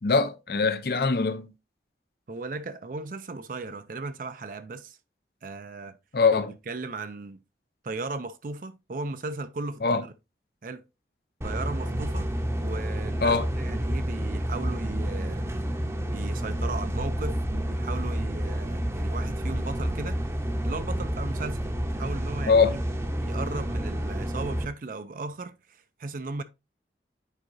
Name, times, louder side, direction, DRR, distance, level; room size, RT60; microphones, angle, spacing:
voice 1, 0.0-1.5 6.1-6.5 9.8-10.0 13.2-13.4 22.5-22.8, left 4 dB, 55° left, 0.6 m, -22 dB
voice 2, 2.3-5.0 5.4-6.0 6.7-7.4 7.8-10.0 10.6-10.8 11.4-12.3 12.6-15.5 16.1-20.2 20.6-21.6 21.9-22.8 23.2-26.4, right 3 dB, 50° right, 0.4 m, -36 dB
sound 1, 11.4-24.7, equal, 15° right, 0.7 m, -29 dB
9.0 x 4.7 x 2.6 m
head